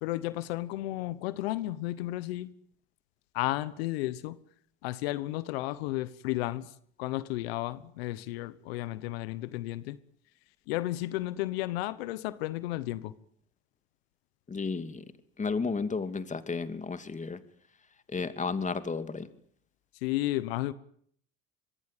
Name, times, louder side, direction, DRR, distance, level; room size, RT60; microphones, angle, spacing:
voice 1, 0.0-2.5 3.3-4.4 4.8-6.7 7.0-10.0 10.7-13.1 20.0-20.7, left 16 dB, 90° left, 1.2 m, -33 dB
voice 2, 14.5-15.0 15.4-17.4 18.1-19.3, left 4 dB, 25° left, 2.8 m, -32 dB
25.5 x 21.0 x 9.3 m
supercardioid pair, 80°, 30 cm